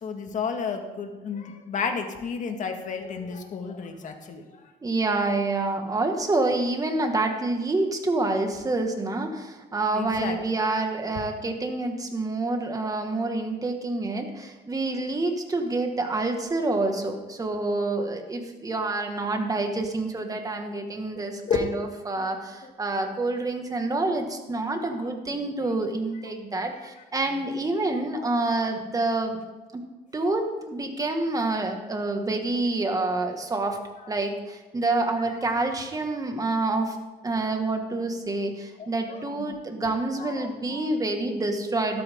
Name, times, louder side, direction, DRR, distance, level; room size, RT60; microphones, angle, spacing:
voice 1, 0.0-4.6 9.9-10.4 21.2-21.7 22.2-22.3 28.2-28.3 30.2-30.3 38.8-40.9, left 5 dB, 50° left, 5 dB, 1.9 m, -32 dB
voice 2, 4.8-29.4 29.7-29.8 30.1-33.8 34.1-37.0 37.2-42.0, right 2 dB, 20° right, 4 dB, 1.9 m, -27 dB
13.0 x 12.5 x 3.8 m, 1.2 s
cardioid pair, 110°, 17 cm